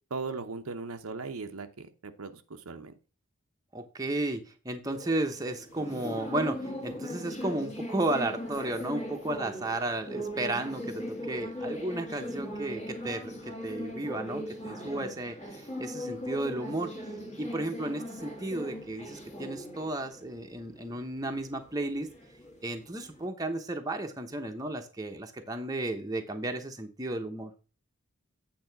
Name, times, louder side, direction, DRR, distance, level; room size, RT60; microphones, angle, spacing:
voice 1, 0.1-2.9, right 4 dB, 75° right, 7 dB, 0.8 m, -38 dB
voice 2, 3.7-16.9 17.4-22.1 22.6-27.5, right 2 dB, 15° right, 4 dB, 0.9 m, -33 dB
sound 1, 4.8-23.3, equal, 30° left, 1.7 m, -39 dB
8.8 x 3.7 x 5.8 m, 0.34 s
head